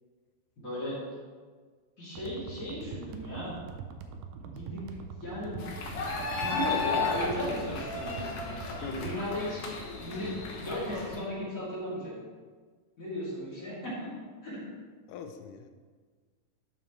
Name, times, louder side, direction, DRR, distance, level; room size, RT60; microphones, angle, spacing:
voice 1, 0.6-1.0 2.0-3.6 4.4-4.8 5.2-8.2 8.8-12.1 13.0-14.1 14.4-14.6, left 1 dB, 25° left, -8 dB, 2.8 m, -36 dB
sound 1, 2.1-9.2, right 6 dB, 85° right, 2.3 m, -43 dB
sound 2, 5.6-11.2, left 4 dB, 65° left, 1.7 m, -34 dB
voice 2, 8.8-9.2 15.1-15.7, left 5 dB, 80° left, 7 dB, 2.1 m, -42 dB
11.5 x 7.3 x 3.2 m, 1.5 s
omnidirectional pair, 3.8 m